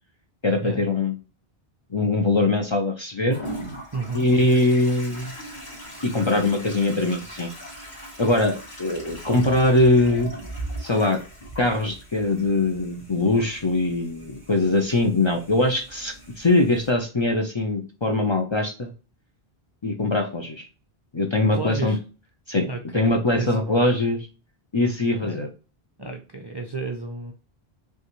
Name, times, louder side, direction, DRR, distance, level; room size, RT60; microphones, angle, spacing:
voice 1, 0.4-1.1 1.9-3.4 4.1-5.3 6.0-7.5 8.2-10.3 10.8-11.2 11.6-18.9 19.8-20.7 21.1-22.0 22.5-22.7 22.9-24.3 24.7-25.5, left 2 dB, 35° left, 3 dB, 0.5 m, -22 dB
Toilet flush, 3.3-16.9, right 1 dB, 55° left, 2.3 m, -40 dB
voice 2, 3.9-4.3 21.5-22.0 22.7-23.8 25.2-25.4 26.0-27.3, right 3 dB, 35° right, 2 dB, 0.4 m, -32 dB
5.4 x 2.4 x 3.0 m, 0.33 s
omnidirectional pair, 1.0 m